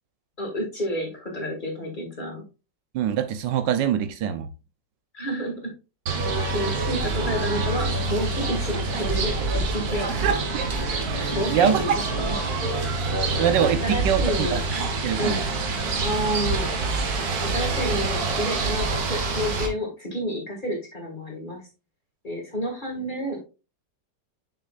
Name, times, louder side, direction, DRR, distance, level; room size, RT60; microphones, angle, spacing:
voice 1, 0.4-2.4 5.1-5.7 6.5-10.3 11.2-12.4 13.8-14.6 15.2-15.4 16.0-16.7 17.5-21.6 22.2-23.5, equal, 25° left, 1 dB, 2.1 m, -30 dB
voice 2, 2.9-4.5 10.1-10.7 11.0-11.2 11.5-12.0 13.4-14.6 15.0-15.4, right 9 dB, 80° right, 10 dB, 1.4 m, -24 dB
sound 1, 6.1-19.7, right 3 dB, 60° right, 1.6 m, -26 dB
6.5 x 6.5 x 2.4 m, 0.30 s
omnidirectional pair, 2.0 m